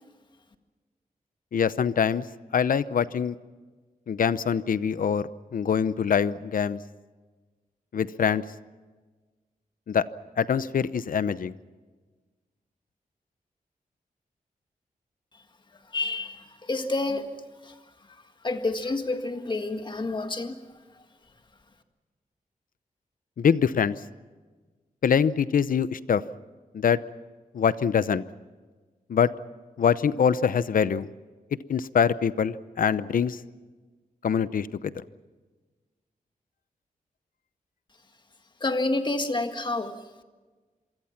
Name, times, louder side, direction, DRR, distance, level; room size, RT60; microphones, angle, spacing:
voice 1, 1.5-2.2 2.5-3.4 4.1-6.8 7.9-8.4 9.9-10.0 10.4-11.5 23.4-24.0 25.0-26.2 26.7-27.0 27.5-28.2 29.1-29.3 29.8-31.1 31.7-33.4 34.2-34.9, left 7 dB, 70° left, 15 dB, 0.8 m, -24 dB
voice 2, 15.9-17.3 17.7-17.8 18.4-20.6 38.6-39.9, left 2 dB, 30° left, 6 dB, 1.8 m, -28 dB
27.0 x 24.0 x 5.9 m, 1.3 s
wide cardioid pair, 160°, 15 cm